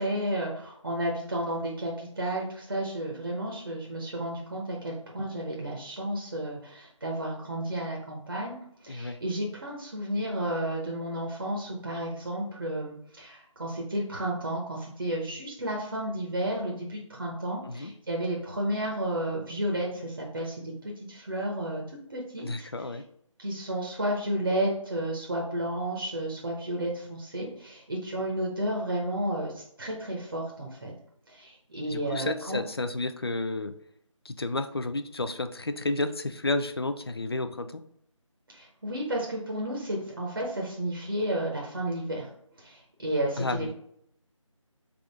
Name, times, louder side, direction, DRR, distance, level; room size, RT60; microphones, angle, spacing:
voice 1, 0.0-20.6 20.8-21.8 22.1-22.7 23.4-30.9 31.3-32.6 38.5-42.3 42.6-43.7, right 1 dB, 40° right, -1 dB, 0.8 m, -32 dB
voice 2, 8.9-9.2 17.7-17.9 22.4-23.0 31.9-33.7 34.2-37.8 43.4-43.7, left 2 dB, 50° left, 9 dB, 0.4 m, -31 dB
3.6 x 3.5 x 3.4 m, 0.69 s
figure-of-eight pair, 165°, 17 cm